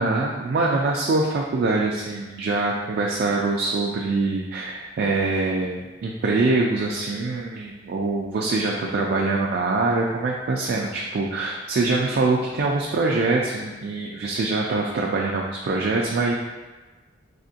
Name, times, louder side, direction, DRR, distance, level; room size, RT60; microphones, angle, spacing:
voice 1, 0.0-16.3, right 3 dB, 55° right, -1 dB, 0.3 m, -24 dB
3.4 x 2.8 x 2.7 m, 1.2 s
head